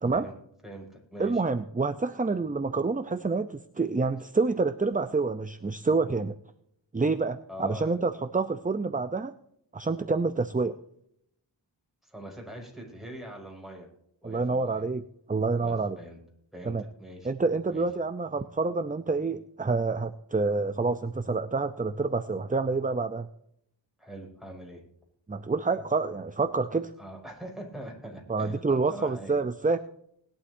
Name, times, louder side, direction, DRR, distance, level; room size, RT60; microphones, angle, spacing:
voice 1, 0.6-1.4 7.5-7.9 12.0-13.9 14.2-14.9 15.6-16.2 16.5-17.3 17.7-17.9 24.0-24.8 27.0-29.4, right 1 dB, ahead, 0 dB, 5.9 m, -43 dB
voice 2, 1.2-6.3 6.9-9.3 9.7-10.8 14.2-16.0 16.7-16.8 17.2-23.3 25.3-26.9 28.3-29.8, right 3 dB, 20° right, 10 dB, 0.5 m, -28 dB
20.5 x 11.5 x 2.7 m, 0.74 s
wide cardioid pair, 80°, 46 cm